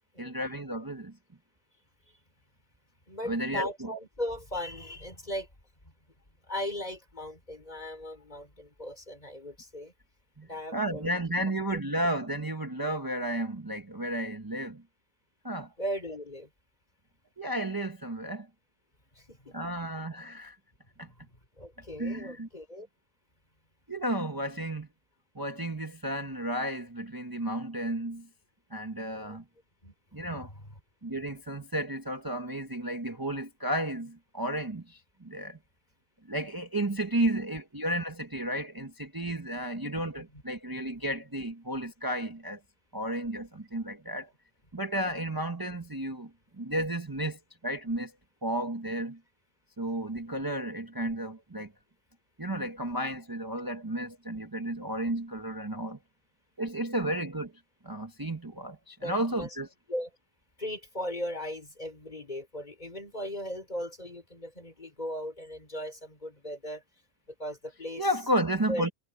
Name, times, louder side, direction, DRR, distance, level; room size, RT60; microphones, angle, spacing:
voice 1, 0.2-1.1 3.3-3.9 10.4-14.8 15.4-15.7 17.4-18.5 19.5-20.6 21.0-21.1 22.0-22.5 23.9-24.9 25.3-28.3 28.7-29.4 30.1-30.5 31.0-35.6 36.3-42.6 42.9-44.3 44.7-46.3 46.6-48.1 48.4-49.2 49.8-51.7 52.4-56.0 56.6-57.5 57.8-59.7 68.0-68.9, right 1 dB, 20° right, 1.1 m, -32 dB
voice 2, 3.1-5.5 5.8-5.9 6.4-9.9 10.4-11.2 15.8-16.5 19.1-19.7 21.2-21.3 21.6-22.9 29.1-29.4 29.8-29.9 30.4-30.5 40.3-40.4 59.0-59.6 59.9-60.1 60.6-66.8 67.3-68.1 68.7-68.9, equal, 40° left, 4.8 m, -38 dB
omnidirectional pair, 1.2 m